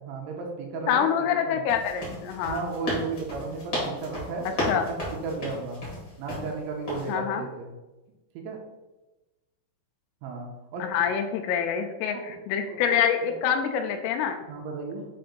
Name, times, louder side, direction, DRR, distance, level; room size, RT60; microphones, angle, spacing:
voice 1, 0.0-1.0 1.5-1.6 2.4-4.5 4.9-5.0 5.2-5.8 6.2-7.7 8.4-8.6 10.2-10.9 12.3-12.4 12.7-12.8 13.2-13.3 14.5-15.1, right 3 dB, 85° right, 0 dB, 2.9 m, -34 dB
voice 2, 0.9-2.7 4.7-4.9 7.1-7.5 10.8-14.4, left 8 dB, 85° left, 6 dB, 2.9 m, -26 dB
sound 1, 1.7-6.5 6.9-7.1, left 1 dB, 65° left, 1.0 m, -33 dB
7.6 x 2.6 x 5.1 m, 1.1 s
omnidirectional pair, 5.8 m